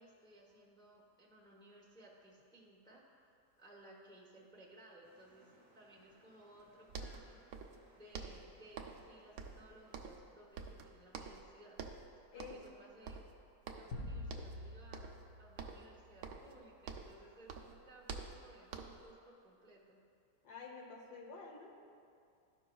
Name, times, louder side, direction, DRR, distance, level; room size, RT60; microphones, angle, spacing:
voice 1, 0.0-11.8 12.3-13.2 13.7-20.0, right 1 dB, 5° left, -4 dB, 0.5 m, -60 dB
sound 1, 5.0-10.2, right 2 dB, 35° right, 0.8 m, -69 dB
sound 2, 6.6-6.7 6.9-7.8 8.1-9.1 9.4-10.3 10.6-11.5 11.8-12.1 12.4-12.8 13.1-14.0 14.3-14.6 14.9-15.3 15.6-17.2 17.5-19.1, right 5 dB, 70° right, 0.9 m, -48 dB
voice 2, 12.3-12.9 20.4-21.7, left 4 dB, 75° left, -1 dB, 1.6 m, -50 dB
sound 3, 13.9-16.5, left 1 dB, 60° left, 0.9 m, -47 dB
13.0 x 5.5 x 2.3 m, 2.4 s
omnidirectional pair, 1.8 m